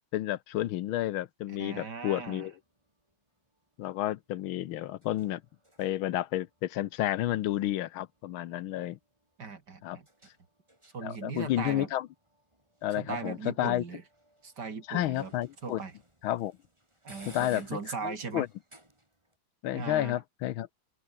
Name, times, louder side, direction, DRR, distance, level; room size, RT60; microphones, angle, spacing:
voice 1, 0.0-2.5 3.8-5.4 5.8-9.0 9.8-10.0 11.0-12.1 12.8-13.8 14.9-15.8 16.2-16.6 17.3-17.6 18.0-18.5 19.6-20.7, left 13 dB, 80° left, 1.6 m, -31 dB
voice 2, 1.5-2.5 9.4-10.1 10.9-11.9 13.0-14.0 14.4-15.3 15.6-15.9 17.0-18.5 19.7-20.2, right 5 dB, 50° right, 3.2 m, -38 dB
sound 1, 1.9-19.4, right 1 dB, 15° right, 5.8 m, -60 dB
open air
omnidirectional pair, 2.3 m